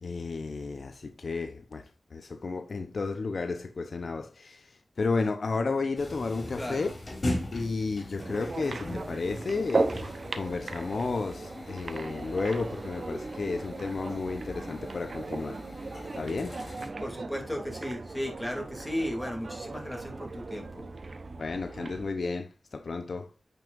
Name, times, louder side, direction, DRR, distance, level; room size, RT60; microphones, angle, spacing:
voice 1, 0.0-6.9 7.5-15.6 16.1-16.6 21.4-23.3, left 4 dB, 70° left, 0.8 m, -32 dB
sound 1, 6.0-16.9, left 1 dB, 50° left, 3.4 m, -40 dB
voice 2, 6.6-6.9 17.0-20.8, equal, 10° left, 2.7 m, -35 dB
sound 2, 8.2-22.1, right 3 dB, 65° right, 0.9 m, -37 dB
9.0 x 5.6 x 2.6 m
wide cardioid pair, 65°, 0 cm